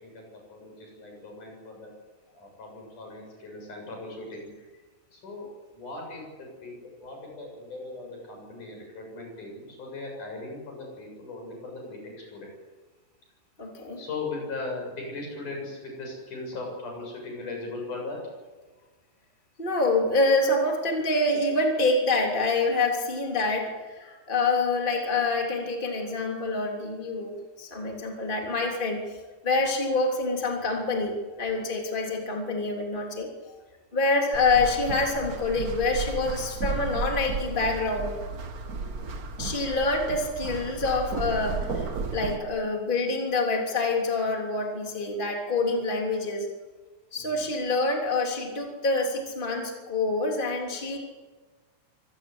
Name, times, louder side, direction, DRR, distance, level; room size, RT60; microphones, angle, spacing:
voice 1, 0.0-1.9 2.3-4.5 5.1-5.5 5.7-12.5 14.0-18.2 24.1-24.2 38.8-39.2 47.2-47.5, left 3 dB, 85° left, 1 dB, 9.0 m, -39 dB
voice 2, 13.6-14.0 19.6-29.0 29.4-33.6 33.9-38.2 39.4-46.5 47.1-51.0, left 3 dB, 15° left, 1 dB, 3.2 m, -26 dB
sound 1, 34.3-42.4, right 4 dB, 45° right, 1.3 m, -34 dB
25.0 x 18.5 x 8.0 m, 1.3 s
omnidirectional pair, 3.5 m